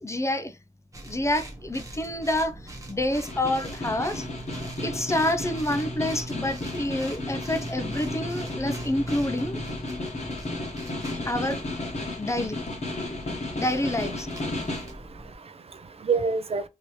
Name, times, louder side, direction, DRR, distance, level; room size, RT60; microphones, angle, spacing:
voice 1, 0.0-0.6 1.0-4.3 4.8-9.6 11.2-11.6 12.2-12.6 13.0-13.2 13.6-14.3, left 1 dB, 20° left, 0.4 m, -28 dB
sound 1, 0.9-15.4, right 1 dB, 25° right, 0.9 m, -40 dB
Snare drum, 3.1-15.0, left 2 dB, 55° left, 1.2 m, -34 dB
voice 2, 14.5-16.7, right 5 dB, 45° right, 0.4 m, -30 dB
3.0 x 2.7 x 3.0 m
wide cardioid pair, 110°, 14 cm